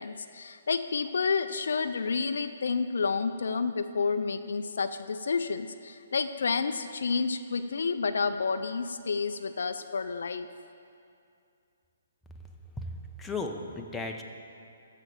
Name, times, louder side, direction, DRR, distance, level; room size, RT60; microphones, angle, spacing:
voice 1, 0.0-10.5, left 5 dB, 65° left, 10 dB, 0.4 m, -30 dB
voice 2, 13.2-14.2, left 3 dB, 10° left, 1 dB, 0.8 m, -35 dB
14.0 x 5.0 x 7.1 m, 2.5 s
figure-of-eight pair, 130°, 0 cm